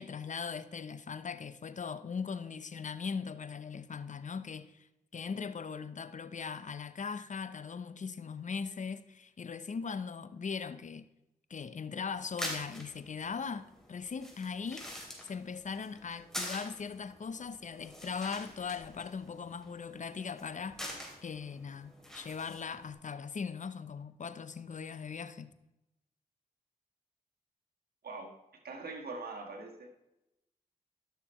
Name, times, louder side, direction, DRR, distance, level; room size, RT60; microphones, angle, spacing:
voice 1, 0.0-4.9 5.1-11.1 11.5-14.9 15.2-25.5, left 5 dB, 50° left, 0.7 m, -40 dB
sound 1, 12.1-22.9, equal, 5° left, 3.0 m, -46 dB
voice 2, 28.6-29.9, right 3 dB, 70° right, 1.7 m, -42 dB
12.5 x 6.7 x 3.1 m
supercardioid pair, 40°, 16 cm